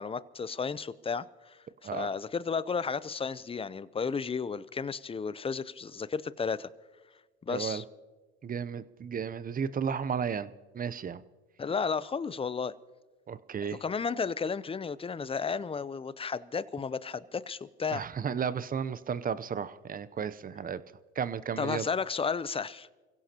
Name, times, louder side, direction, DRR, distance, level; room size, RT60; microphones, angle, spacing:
voice 1, 0.0-6.7 7.4-7.8 11.6-12.7 13.7-18.0 21.6-22.9, left 5 dB, 20° left, 0.6 m, -33 dB
voice 2, 7.5-7.8 8.4-11.2 13.3-13.8 17.9-20.8 21.2-21.8, right 7 dB, 25° right, 0.7 m, -33 dB
29.5 x 16.5 x 2.9 m
hypercardioid pair, 80°, 32 cm